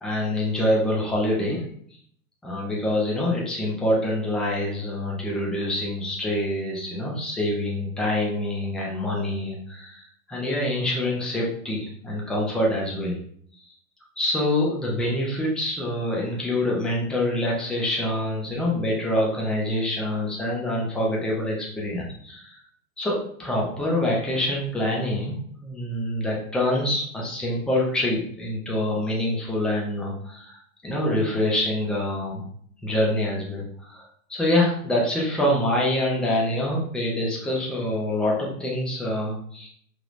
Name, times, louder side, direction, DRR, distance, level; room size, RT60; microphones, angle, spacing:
voice 1, 0.0-1.6 2.4-13.2 13.6-13.7 14.2-22.6 23.0-32.4 32.8-39.7, left 1 dB, ahead, -3 dB, 0.3 m, -26 dB
4.7 x 3.1 x 2.5 m, 0.62 s
hypercardioid pair, 115°, 45 cm